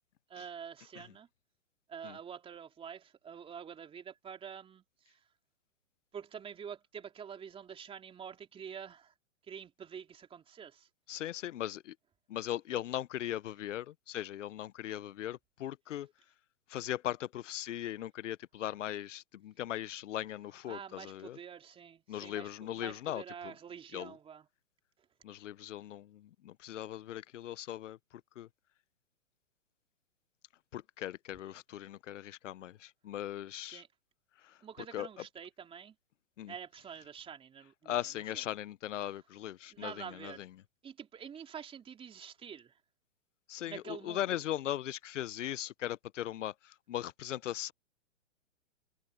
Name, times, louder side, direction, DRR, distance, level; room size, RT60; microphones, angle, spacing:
voice 1, 0.3-1.3 1.9-5.2 6.1-9.1 9.5-10.9 20.7-24.5 33.7-33.9 34.6-35.9 36.5-38.0 38.3-38.4 39.7-40.4 40.8-42.8 43.7-44.4, right 7 dB, 15° right, 2.9 m, -47 dB
voice 2, 11.1-12.0 12.3-16.1 16.7-21.4 22.1-23.5 23.9-24.2 25.2-28.0 28.4-28.5 30.7-33.8 34.4-34.6 34.9-35.1 36.4-36.5 37.9-40.5 43.5-47.7, left 12 dB, 70° left, 0.8 m, -39 dB
hypercardioid pair, 140°, 38 cm